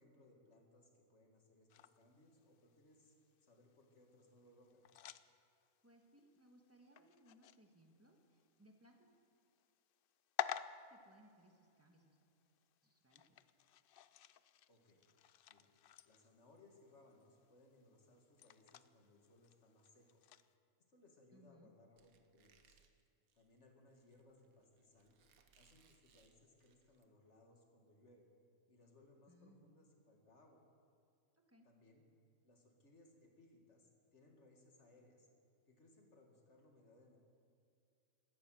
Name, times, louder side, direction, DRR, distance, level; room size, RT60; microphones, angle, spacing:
voice 1, 0.0-4.9 14.7-15.0 15.5-15.7 16.0-20.2 20.9-22.8 23.3-25.2 25.6-28.3 28.7-30.6 31.6-32.0 32.4-35.3 35.7-37.2, left 2 dB, 55° left, 2 dB, 2.3 m, -67 dB
sound 1, 1.7-20.5, left 10 dB, 80° left, 0.5 m, -52 dB
voice 2, 5.8-9.1 10.9-12.3 12.8-13.2 21.3-21.7 29.3-29.7 31.3-31.7, right 1 dB, 10° right, 2 dB, 1.5 m, -67 dB
Squeak, 22.0-27.0, right 6 dB, 80° right, 1.5 m, -73 dB
16.5 x 13.5 x 6.4 m, 2.5 s
omnidirectional pair, 1.5 m